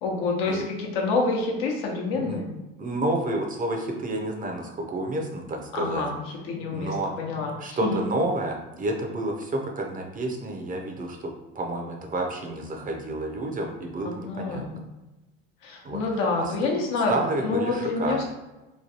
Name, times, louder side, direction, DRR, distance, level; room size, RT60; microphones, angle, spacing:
voice 1, 0.0-2.5 5.7-6.1 6.5-8.0 14.2-14.8 15.6-17.1 17.4-18.2, left 3 dB, 75° left, 0 dB, 0.8 m, -27 dB
voice 2, 2.8-6.0 6.7-7.1 7.6-11.2 11.5-14.6 15.8-16.0 16.4-16.5 17.1-18.2, right 1 dB, 30° right, 2 dB, 0.6 m, -29 dB
3.1 x 2.3 x 2.8 m, 1.0 s
supercardioid pair, 90°, 30 cm